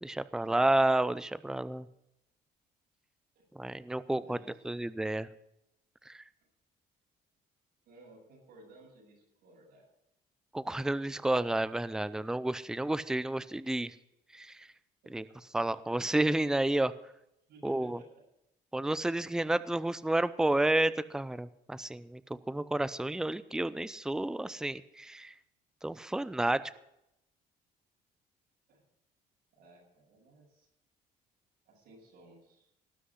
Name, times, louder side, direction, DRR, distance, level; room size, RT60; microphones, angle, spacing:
voice 1, 0.0-1.9 3.5-4.4 4.6-5.3 6.1-6.2 10.5-13.9 14.3-14.7 15.1-15.2 15.5-16.9 17.6-18.0 18.7-25.3 25.8-26.6, right 1 dB, 5° right, 16 dB, 0.5 m, -30 dB
voice 2, 4.0-4.8 7.9-9.8 15.0-15.1 17.5-18.2 28.7-28.8 29.6-30.7 31.7-32.7, right 1 dB, 75° right, -3 dB, 7.3 m, -57 dB
18.5 x 6.2 x 9.7 m, 0.82 s
cardioid pair, 110°, 17 cm